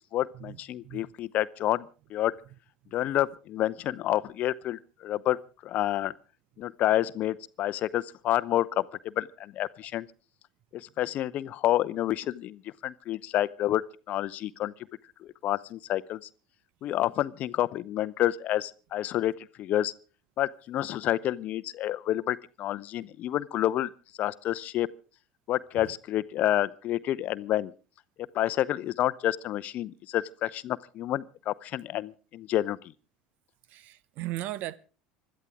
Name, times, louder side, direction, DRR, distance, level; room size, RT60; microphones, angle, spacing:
voice 1, 0.1-2.3 2.9-5.4 5.6-6.1 6.6-10.1 10.7-14.7 15.2-16.3 16.8-19.9 20.4-24.9 25.5-27.7 28.3-32.9, left 13 dB, 45° left, 0.7 m, -29 dB
voice 2, 33.7-34.8, right 15 dB, 50° right, 0.8 m, -36 dB
25.5 x 13.0 x 3.6 m
figure-of-eight pair, 70°, 4 cm